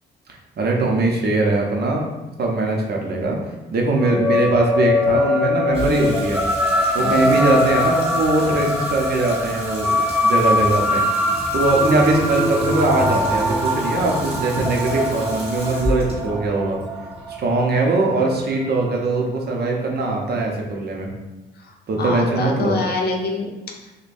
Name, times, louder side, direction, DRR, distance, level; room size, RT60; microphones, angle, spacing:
voice 1, 0.3-2.0 2.4-3.4 3.7-6.4 6.9-11.0 11.5-16.8 17.3-21.1 21.9-22.8, right 2 dB, 55° right, 0 dB, 0.7 m, -21 dB
sound 1, 4.0-18.7, left 1 dB, 5° right, 0.3 m, -22 dB
Water tap faucet / Sink (filling or washing), 5.7-18.1, left 1 dB, 30° right, 1.1 m, -34 dB
voice 2, 21.6-23.9, left 3 dB, 55° left, 1 dB, 0.6 m, -26 dB
4.9 x 2.2 x 2.5 m, 1.1 s
cardioid pair, 90°, 20 cm